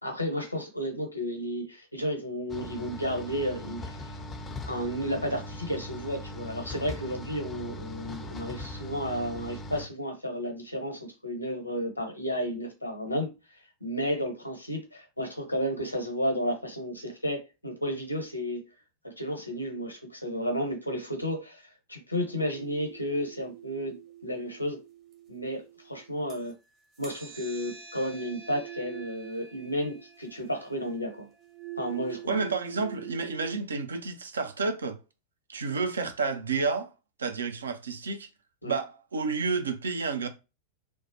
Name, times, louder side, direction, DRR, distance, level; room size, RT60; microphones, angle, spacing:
voice 1, 0.0-4.0 4.7-13.3 13.8-18.7 19.0-21.6 21.9-24.8 25.3-26.5 27.0-31.3 31.8-32.3 38.6-38.8, equal, 85° left, 0.8 m, -32 dB
sound 1, 2.5-9.9, left 1 dB, 20° left, 0.4 m, -40 dB
sound 2, 22.5-26.5 26.9-33.6, right 11 dB, 30° right, 0.8 m, -45 dB
voice 2, 32.3-35.0 35.5-36.9 37.2-38.3 38.6-40.3, right 4 dB, 70° right, 0.5 m, -30 dB
3.1 x 2.1 x 2.7 m
figure-of-eight pair, 90°, 0 cm